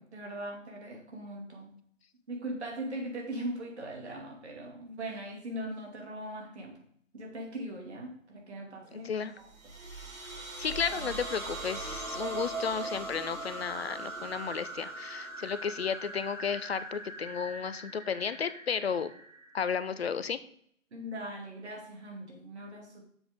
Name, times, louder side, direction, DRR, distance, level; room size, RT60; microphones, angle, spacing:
voice 1, 0.0-1.7 2.3-6.8 7.1-9.5 10.9-11.2 20.9-23.1, right 1 dB, 55° right, 1 dB, 2.4 m, -40 dB
sound 1, 9.4-20.0, right 2 dB, 90° right, 3.4 m, -40 dB
voice 2, 10.6-19.1 19.5-20.4, left 6 dB, 50° left, 13 dB, 0.6 m, -33 dB
9.6 x 7.1 x 3.6 m, 0.65 s
figure-of-eight pair, 135°, 40 cm